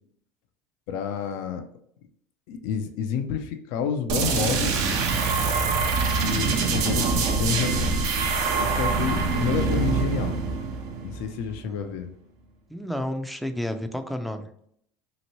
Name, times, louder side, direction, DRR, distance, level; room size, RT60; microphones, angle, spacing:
voice 1, 0.9-1.6 2.5-5.0 6.2-7.9 8.6-10.4 11.0-12.1, left 7 dB, 70° left, 6 dB, 0.4 m, -29 dB
sound 1, 4.1-11.7, right 4 dB, 60° right, 0.6 m, -24 dB
voice 2, 12.7-14.5, left 1 dB, ahead, 7 dB, 0.4 m, -31 dB
2.9 x 2.5 x 2.9 m, 0.67 s
hypercardioid pair, 90°, 7 cm